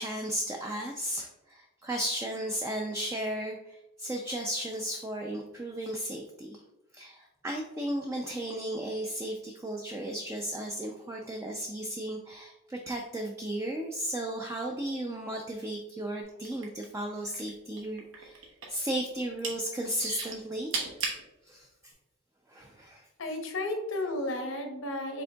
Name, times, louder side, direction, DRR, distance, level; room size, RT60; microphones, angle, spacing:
voice 1, 0.0-6.6 6.9-20.7 21.4-21.7 22.5-23.0, right 1 dB, 15° right, 1 dB, 0.3 m, -35 dB
sound 1, 16.3-17.5 17.8-18.8 19.2-19.5 20.0-21.2 21.9-22.0, right 4 dB, 70° right, 0.9 m, -34 dB
voice 2, 23.2-25.2, left 1 dB, 75° left, 4 dB, 0.8 m, -33 dB
5.1 x 3.6 x 2.2 m, 0.93 s
head